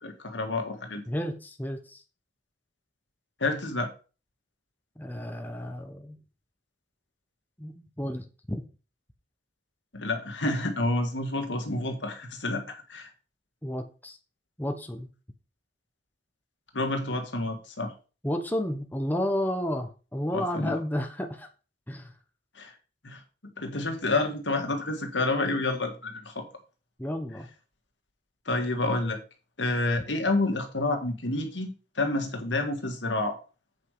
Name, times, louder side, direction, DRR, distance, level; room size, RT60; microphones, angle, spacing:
voice 1, 0.0-1.0 3.4-3.9 9.9-13.1 16.7-17.9 20.3-20.8 22.6-22.7 23.0-23.2 23.6-26.5 28.5-29.2 29.6-33.4, left 2 dB, 85° left, 4 dB, 1.9 m, -29 dB
voice 2, 1.1-2.0 5.0-6.2 7.6-8.6 13.6-14.2 14.6-15.1 18.2-21.5 21.9-22.1 27.0-27.5, left 1 dB, 10° left, 4 dB, 1.1 m, -32 dB
8.4 x 5.3 x 4.9 m, 0.34 s
head